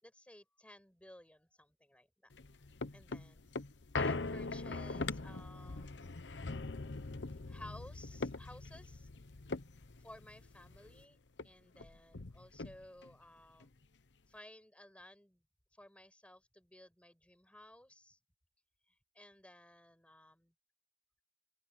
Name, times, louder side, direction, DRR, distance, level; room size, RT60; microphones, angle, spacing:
voice 1, 0.0-2.3 2.9-3.5 3.9-6.2 7.5-9.1 10.0-13.7 14.3-15.4 15.7-18.2 19.1-20.5, left 1 dB, 5° left, 5.9 m, -56 dB
sound 1, 2.3-11.0 11.4-11.5 11.7-13.1 13.6-13.7, left 3 dB, 85° left, 1.0 m, -42 dB
open air
head